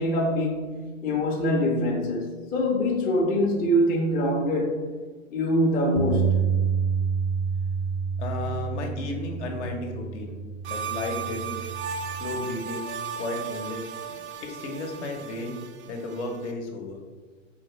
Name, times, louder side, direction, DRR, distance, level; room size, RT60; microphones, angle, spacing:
voice 1, 0.0-4.8 5.3-6.5, equal, 25° left, 0.6 m, -24 dB
Bass guitar, 6.0-12.2, right 6 dB, 85° left, 0.6 m, -28 dB
voice 2, 8.2-10.4 10.7-11.5 12.1-13.9 14.4-17.0, left 2 dB, 60° left, 0.9 m, -34 dB
sound 1, 10.6-16.5, right 6 dB, 60° right, 0.5 m, -36 dB
4.3 x 3.0 x 3.0 m
figure-of-eight pair, 95°, 38 cm